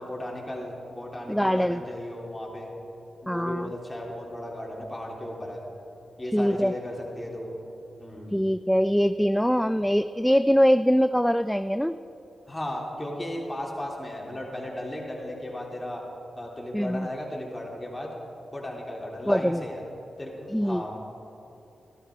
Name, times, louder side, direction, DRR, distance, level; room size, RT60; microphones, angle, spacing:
voice 1, 0.0-2.7 3.2-5.6 6.2-7.6 8.0-8.3 12.5-16.0 16.3-18.1 18.5-19.8 20.2-21.0, left 1 dB, 20° left, -3 dB, 3.4 m, -35 dB
voice 2, 1.3-1.8 3.3-3.7 6.3-6.7 8.3-12.0 16.7-17.1 19.3-19.6 20.5-21.0, equal, 5° left, 12 dB, 0.3 m, -23 dB
13.0 x 12.5 x 4.9 m, 2.9 s
supercardioid pair, 40°, 0 cm